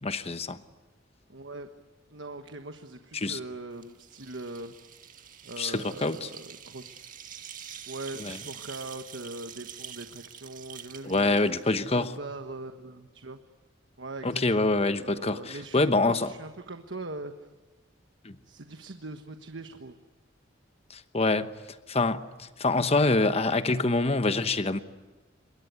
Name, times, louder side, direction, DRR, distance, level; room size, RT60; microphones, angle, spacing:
voice 1, 0.0-0.6 3.1-3.4 5.6-6.3 8.2-8.4 11.0-12.1 14.2-16.3 18.2-18.4 20.9-21.5 21.9-24.8, left 2 dB, 35° left, 11 dB, 1.1 m, -26 dB
voice 2, 1.3-1.7 2.1-4.7 5.4-7.2 7.9-11.4 11.8-13.4 14.0-14.7 15.0-17.5 18.4-20.0, right 2 dB, 70° right, 7 dB, 1.3 m, -41 dB
sound 1, 3.7-12.2, right 9 dB, 45° right, 1.6 m, -46 dB
27.0 x 22.5 x 9.5 m, 1.2 s
head